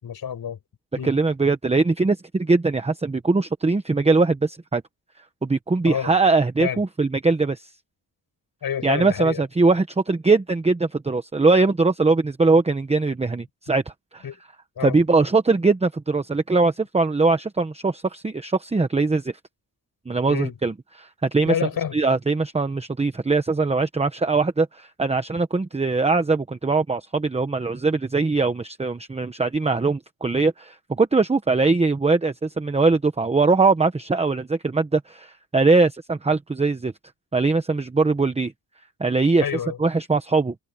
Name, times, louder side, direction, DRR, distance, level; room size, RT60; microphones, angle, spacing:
voice 1, 0.0-0.6 1.0-1.1 5.9-6.1 6.6-6.8 8.6-9.4 14.2-14.4 14.8-15.0 20.3-20.5 21.5-22.0 39.4-39.8, left 8 dB, 65° left, 6.0 m, -28 dB
voice 2, 1.0-4.8 5.4-7.7 8.8-13.8 14.1-14.2 14.8-19.4 20.1-21.5 21.9-36.9 37.3-38.5 39.0-39.4 39.8-40.5, right 3 dB, 15° right, 1.0 m, -21 dB
open air
wide cardioid pair, 145°, 39 cm